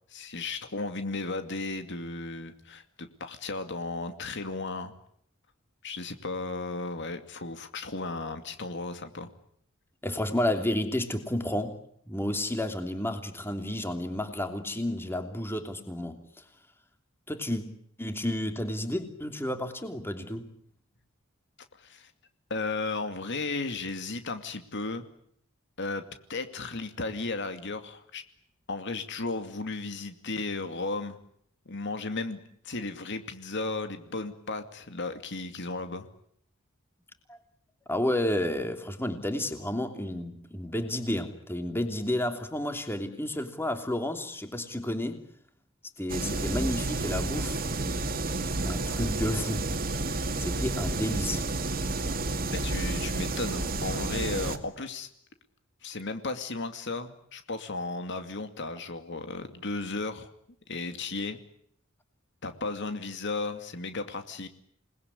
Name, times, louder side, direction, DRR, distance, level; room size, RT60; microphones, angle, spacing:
voice 1, 0.1-4.9 5.8-9.3 21.7-22.1 22.5-25.0 25.8-26.0 26.3-28.2 28.7-31.2 31.7-36.1 52.5-55.1 55.8-60.3 60.7-61.4 62.4-64.5, left 3 dB, 60° left, 8 dB, 2.5 m, -35 dB
voice 2, 10.0-11.8 12.1-16.2 17.3-17.6 18.0-20.5 37.3-37.4 37.9-45.2 46.0-47.6 48.6-49.7 50.4-51.4, left 1 dB, 10° left, 7 dB, 3.1 m, -31 dB
sound 1, 46.1-54.6, right 2 dB, 45° right, 2.4 m, -30 dB
28.5 x 20.5 x 9.9 m, 0.68 s
head